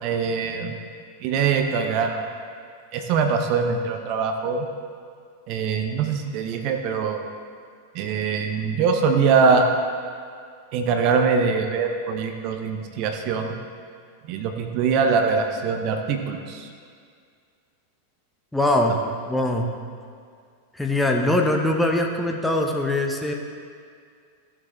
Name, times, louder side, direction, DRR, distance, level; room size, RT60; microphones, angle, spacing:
voice 1, 0.0-0.7 1.2-2.2 2.9-4.7 5.5-7.2 7.9-9.7 10.7-13.6 14.3-16.7, right 5 dB, 45° right, 5 dB, 0.9 m, -23 dB
voice 2, 18.5-19.0 19.3-19.7 20.8-23.3, left 1 dB, 5° left, 1 dB, 0.9 m, -22 dB
16.0 x 7.4 x 3.2 m, 2.2 s
figure-of-eight pair, 90°, 0 cm